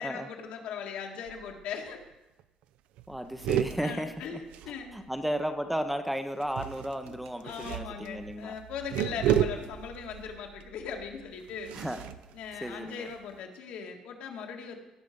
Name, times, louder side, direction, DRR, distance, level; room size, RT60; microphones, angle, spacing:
voice 1, 0.0-2.0 3.8-4.9 7.1-7.2 7.4-11.7 12.3-14.8, left 6 dB, 75° left, 2 dB, 1.8 m, -39 dB
sound 1, 1.3-1.7 2.0-2.1 2.4-2.6 3.0-5.3 6.4-13.3, right 10 dB, 85° right, 0.5 m, -34 dB
voice 2, 3.1-4.4 4.9-8.6 9.1-9.4 11.7-12.1 12.6-13.1, equal, 5° right, 8 dB, 0.5 m, -34 dB
17.5 x 6.4 x 5.1 m, 1.0 s
cardioid pair, 170°, 2 cm